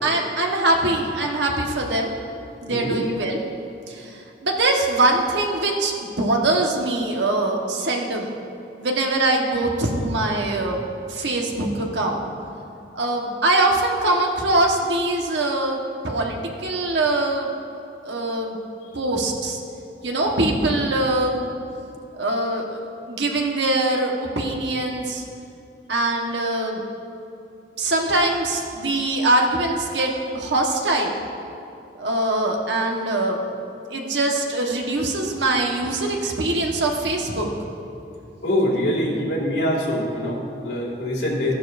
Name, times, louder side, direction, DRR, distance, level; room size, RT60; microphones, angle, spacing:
voice 1, 0.0-2.1 2.6-3.4 3.9-4.1 4.4-8.3 8.8-10.8 11.1-12.2 12.9-17.5 18.0-18.5 18.9-19.6 20.0-21.5 22.1-22.8 23.1-25.2 25.9-26.8 27.8-31.2 31.9-33.4 33.9-37.5, right 2 dB, 80° right, 0 dB, 1.4 m, -22 dB
voice 2, 2.7-3.1 38.4-41.5, left 1 dB, 90° left, -4 dB, 2.4 m, -24 dB
15.0 x 11.5 x 2.6 m, 2.7 s
head